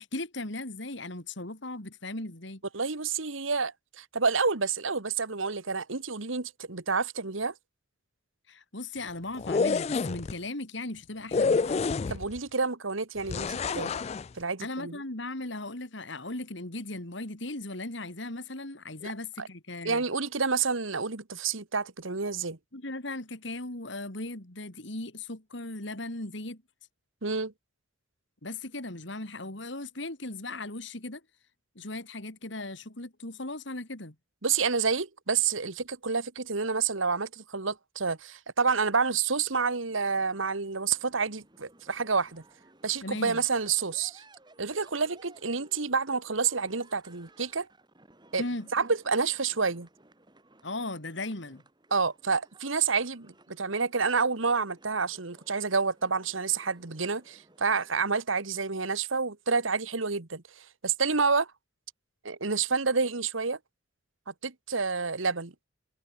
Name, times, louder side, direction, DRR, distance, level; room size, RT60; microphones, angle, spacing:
voice 1, 0.0-2.6 8.5-11.8 12.1-12.2 14.6-20.0 22.7-26.6 28.4-31.2 31.7-34.1 43.0-43.4 48.4-48.7 50.6-51.6, left 2 dB, 65° left, 3.2 m, -37 dB
voice 2, 2.7-7.5 12.1-14.0 14.4-15.0 19.0-19.1 19.4-19.5 19.9-22.6 27.2-27.5 34.4-42.4 42.8-44.2 44.6-47.7 48.3-48.4 48.7-49.9 51.9-61.5 62.2-63.6 64.3-65.5, right 5 dB, 80° right, 1.7 m, -29 dB
sound 1, 9.3-10.3 11.3-12.4 13.3-14.3, left 4 dB, 30° left, 0.3 m, -28 dB
sound 2, 39.6-58.0, right 2 dB, 20° right, 5.2 m, -59 dB
head